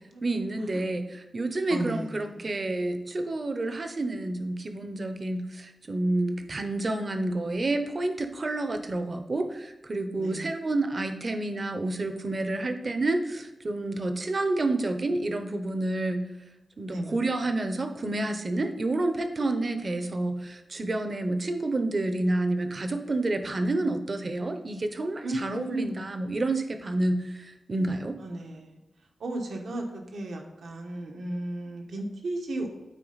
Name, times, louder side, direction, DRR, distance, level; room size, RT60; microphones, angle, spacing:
voice 1, 0.2-16.3 16.8-28.2, right 2 dB, 40° right, 7 dB, 0.7 m, -29 dB
voice 2, 1.7-2.5 10.2-10.5 16.9-17.1 25.2-26.0 28.2-28.8 29.2-32.7, right 1 dB, 85° right, 2 dB, 1.2 m, -34 dB
9.1 x 4.3 x 4.0 m, 1.0 s
wide cardioid pair, 130°, 0 cm